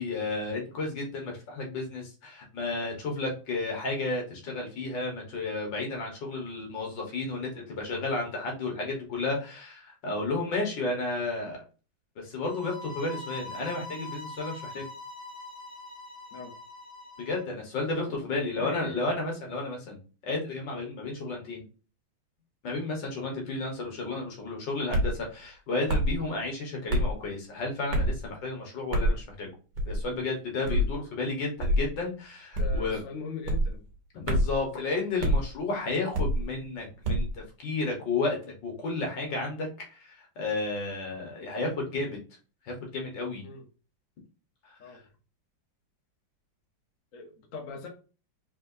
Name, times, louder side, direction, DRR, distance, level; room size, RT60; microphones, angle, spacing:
voice 1, 0.0-11.6 12.2-14.9 17.2-21.6 22.6-29.5 29.9-33.0 34.1-42.2 42.7-43.5 44.7-44.8, left 3 dB, 70° left, 0 dB, 1.9 m, -32 dB
sound 1, 12.4-17.4, left 2 dB, 35° left, 0.6 m, -42 dB
voice 2, 18.2-19.1 30.6-30.9 32.6-33.8 43.4-43.6 44.8-45.0 47.1-47.9, left 5 dB, 50° left, 2 dB, 1.1 m, -40 dB
sound 2, 24.9-25.2 25.9-26.2 26.9-27.1 27.9-28.2 28.9-29.2 29.8-30.1 30.7-30.9 31.6-31.9 32.5-32.9 33.5-33.7 34.3-34.6 35.2-35.4 36.1-36.4 37.0-37.3, equal, 65° right, 1.6 m, -25 dB
4.4 x 3.6 x 2.6 m, 0.35 s
omnidirectional pair, 2.1 m